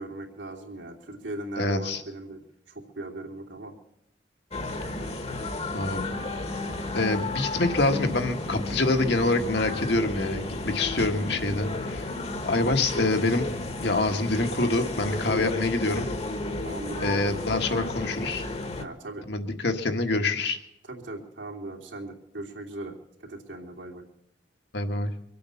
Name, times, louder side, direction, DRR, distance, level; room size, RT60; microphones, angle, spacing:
voice 1, 0.0-3.7 16.6-17.2 18.8-19.3 20.8-22.9 23.2-24.0, right 2 dB, 80° right, 0 dB, 2.9 m, -38 dB
voice 2, 1.6-2.0 5.7-6.0 6.9-12.1 12.4-13.5 13.8-16.1 17.0-18.4 19.3-20.6 24.7-25.1, left 2 dB, 60° left, 6 dB, 1.6 m, -26 dB
sound 1, 4.5-18.8, left 2 dB, 35° left, 1.3 m, -33 dB
24.0 x 8.6 x 7.0 m, 0.78 s
head